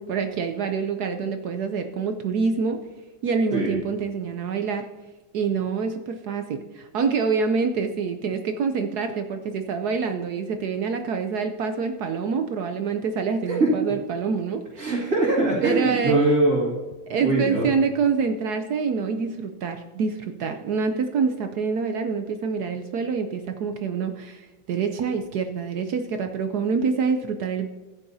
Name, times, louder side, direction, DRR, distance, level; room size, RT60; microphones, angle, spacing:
voice 1, 0.0-2.8 3.2-4.8 5.3-14.9 15.6-16.3 17.1-27.7, right 5 dB, 65° right, 7 dB, 1.0 m, -26 dB
voice 2, 14.8-16.8 17.1-17.7, right 2 dB, 40° right, -8 dB, 2.7 m, -22 dB
15.0 x 9.9 x 2.7 m, 1.2 s
omnidirectional pair, 2.2 m